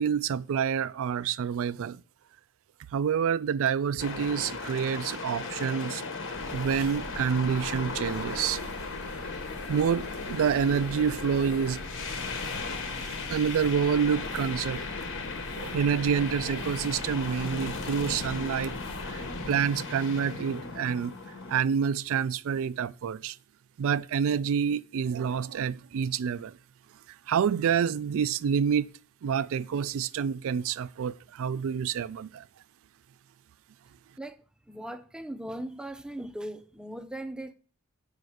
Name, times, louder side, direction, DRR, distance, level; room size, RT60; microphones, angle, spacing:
voice 1, 0.0-2.0 2.9-6.0 6.5-8.6 9.7-11.8 13.3-14.8 15.6-18.8 19.0-21.2 21.5-23.4 23.8-26.6 27.3-28.9 29.2-32.4, right 7 dB, 65° right, 0.3 m, -28 dB
sound 1, 4.0-21.6, left 4 dB, 60° left, 1.2 m, -37 dB
sound 2, 6.3-19.5, left 1 dB, 85° left, 1.4 m, -43 dB
voice 2, 34.7-37.5, right 1 dB, 5° right, 0.5 m, -38 dB
6.8 x 4.4 x 6.3 m
head